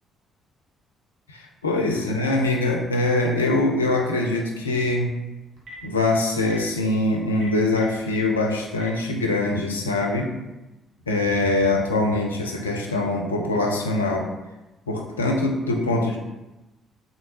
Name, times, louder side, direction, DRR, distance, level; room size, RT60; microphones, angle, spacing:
voice 1, 1.3-5.1 5.8-10.3 11.1-14.3 14.9-16.2, left 2 dB, 85° left, 1 dB, 0.4 m, -23 dB
Telephone, 4.8-5.0 5.6-5.8 6.4-6.6 7.3-8.2 8.7-8.9, left 1 dB, 55° right, 0.8 m, -40 dB
3.2 x 2.7 x 2.8 m, 1.0 s
figure-of-eight pair, 45°, 0 cm